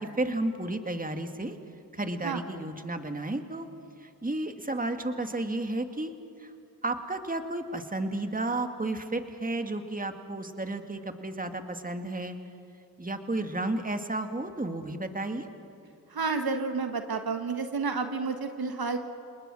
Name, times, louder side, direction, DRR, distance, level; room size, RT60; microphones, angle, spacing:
voice 1, 0.0-1.6 1.9-3.7 4.0-6.1 6.4-6.5 6.8-12.4 13.0-15.5, right 2 dB, 20° right, 7 dB, 2.0 m, -32 dB
voice 2, 16.1-19.0, right 4 dB, 65° right, 7 dB, 1.5 m, -30 dB
28.5 x 20.0 x 6.2 m, 2.6 s
cardioid pair, 45°, 40 cm